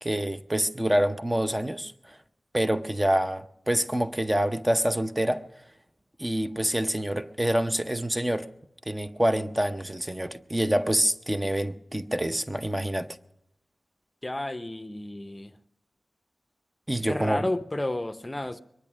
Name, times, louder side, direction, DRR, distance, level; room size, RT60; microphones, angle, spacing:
voice 1, 0.0-2.2 2.5-5.4 6.2-8.5 8.9-13.1 16.9-17.4, right 1 dB, 15° right, 0.7 m, -26 dB
voice 2, 14.2-15.6 17.1-18.6, left 1 dB, 20° left, 0.7 m, -31 dB
22.5 x 10.5 x 6.1 m
wide cardioid pair, 65°, 0 cm